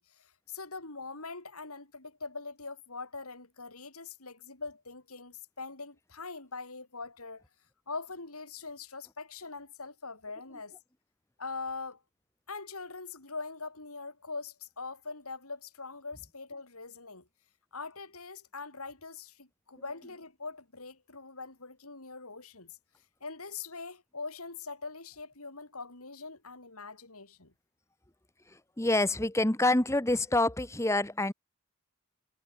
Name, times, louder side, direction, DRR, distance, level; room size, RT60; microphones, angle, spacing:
voice 1, 0.0-7.4 7.9-10.8 11.4-12.0 12.5-17.3 17.7-22.8 23.2-27.5, left 4 dB, 80° left, 4.7 m, -42 dB
voice 2, 28.8-31.3, left 2 dB, 15° left, 1.2 m, -26 dB
head